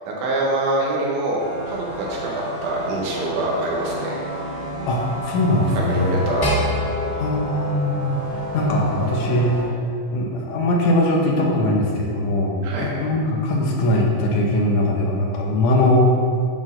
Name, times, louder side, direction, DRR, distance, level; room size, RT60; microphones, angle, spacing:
voice 1, 0.2-4.2 5.9-6.5 12.6-12.9, right 2 dB, 90° right, -3 dB, 2.6 m, -25 dB
sound 1, 1.4-9.6, equal, 50° right, 0.7 m, -30 dB
voice 2, 4.9-6.2 7.2-9.6 10.1-16.0, left 1 dB, 85° left, -1 dB, 2.4 m, -21 dB
sound 2, 6.4-8.8, equal, 25° left, 1.4 m, -27 dB
9.3 x 4.2 x 3.8 m, 2.4 s
omnidirectional pair, 3.4 m